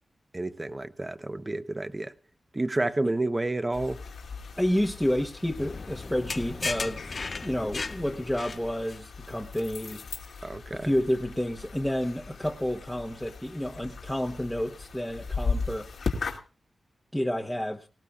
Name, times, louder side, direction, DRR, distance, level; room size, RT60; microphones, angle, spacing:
voice 1, 0.3-2.1 2.5-4.0 10.4-10.9, right 2 dB, 25° right, 0.9 m, -30 dB
sound 1, 3.7-16.4, left 4 dB, 90° left, 2.4 m, -38 dB
voice 2, 4.6-10.0 10.7-15.9 17.1-17.8, equal, 5° left, 1.0 m, -30 dB
sound 2, 5.6-9.0, left 3 dB, 45° left, 0.6 m, -36 dB
19.0 x 18.0 x 2.4 m
wide cardioid pair, 90°, 0 cm